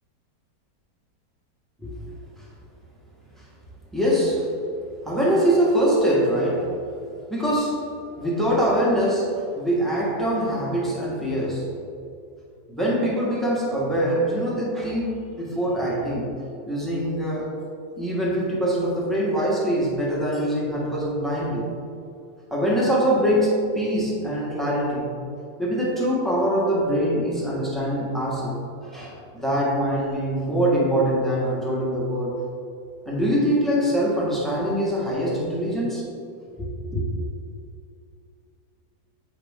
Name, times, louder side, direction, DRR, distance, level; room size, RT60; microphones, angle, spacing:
voice 1, 3.9-4.5 5.0-6.7 7.3-7.8 8.2-11.7 12.7-16.3 16.7-17.5 18.0-21.6 22.5-25.1 25.6-28.6 28.8-32.4 33.0-36.0 36.6-37.0, equal, ahead, -5 dB, 1.3 m, -23 dB
8.5 x 5.1 x 3.6 m, 2.5 s
omnidirectional pair, 1.8 m